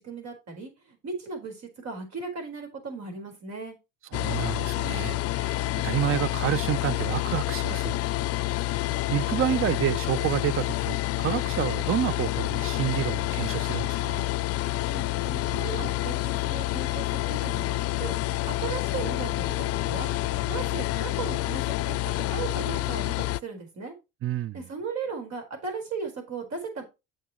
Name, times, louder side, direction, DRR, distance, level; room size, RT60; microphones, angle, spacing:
voice 1, 0.0-3.8 14.9-18.1 18.5-20.1 20.5-23.9 24.5-26.8, right 5 dB, 60° right, 4.4 m, -37 dB
sound 1, 4.1-23.4, left 17 dB, 50° left, 0.5 m, -28 dB
voice 2, 4.1-8.0 9.1-14.3 24.2-24.6, right 12 dB, 45° right, 0.6 m, -29 dB
8.9 x 6.7 x 3.0 m
supercardioid pair, 75°, 31 cm